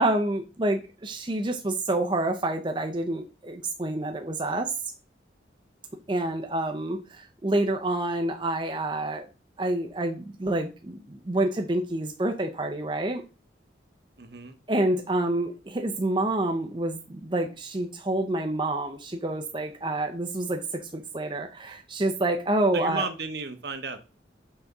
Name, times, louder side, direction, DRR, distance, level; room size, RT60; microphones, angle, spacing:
voice 1, 0.0-4.7 6.1-9.3 9.6-13.2 14.7-23.0, right 1 dB, 25° right, 4 dB, 0.6 m, -28 dB
voice 2, 14.2-14.5 22.7-24.0, right 4 dB, 55° right, 9 dB, 0.9 m, -33 dB
5.9 x 4.1 x 5.3 m, 0.32 s
head